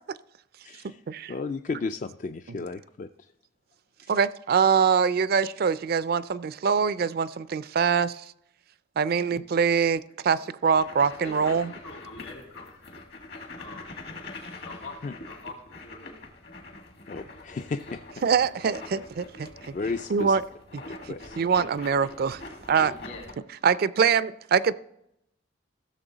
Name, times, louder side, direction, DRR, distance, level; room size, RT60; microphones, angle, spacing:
voice 1, 0.6-1.0 1.3-3.3 4.0-4.1 15.0-15.1 17.1-18.0 19.7-20.4 20.9-21.4, left 4 dB, 40° left, 9 dB, 0.3 m, -34 dB
voice 2, 4.1-8.3 9.0-11.7 18.2-19.7 20.1-20.4 21.0-22.4 22.7-22.9 23.6-24.7, right 6 dB, 55° right, 16 dB, 0.4 m, -24 dB
sound 1, 10.7-23.3, left 2 dB, 60° left, 1.7 m, -44 dB
voice 3, 11.2-12.8 13.6-14.1 14.6-16.3 16.7-16.9 21.6-21.7 22.0-22.1 22.8-23.3, left 2 dB, 75° left, 1 dB, 2.9 m, -44 dB
15.5 x 6.7 x 4.0 m, 0.79 s
head